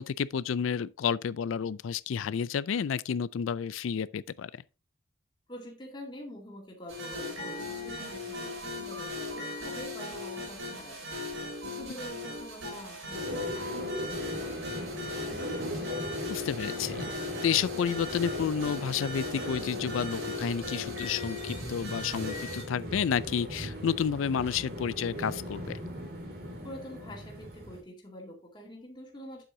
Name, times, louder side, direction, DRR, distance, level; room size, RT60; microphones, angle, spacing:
voice 1, 0.0-4.6 15.8-15.9 16.3-25.8, left 7 dB, 90° left, 0.4 m, -31 dB
voice 2, 5.5-11.2 11.6-14.7 26.6-29.4, left 1 dB, 20° left, 2.2 m, -46 dB
sound 1, 6.9-22.6, left 2 dB, 90° right, 4.6 m, -38 dB
sound 2, 13.1-27.8, equal, 50° right, 2.6 m, -39 dB
8.8 x 7.9 x 2.7 m
head